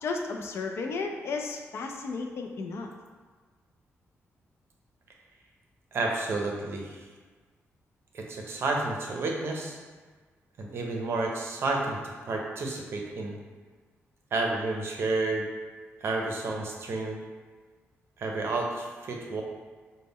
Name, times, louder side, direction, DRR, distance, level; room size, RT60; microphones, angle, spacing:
voice 1, 0.0-2.9, left 4 dB, 60° left, 3 dB, 0.4 m, -33 dB
voice 2, 5.9-7.0 8.1-9.8 10.6-12.0 12.3-13.3 14.3-15.5 16.0-17.2 18.2-19.4, right 3 dB, 55° right, 0 dB, 0.5 m, -30 dB
4.0 x 2.1 x 3.5 m, 1.4 s
wide cardioid pair, 160°, 5 cm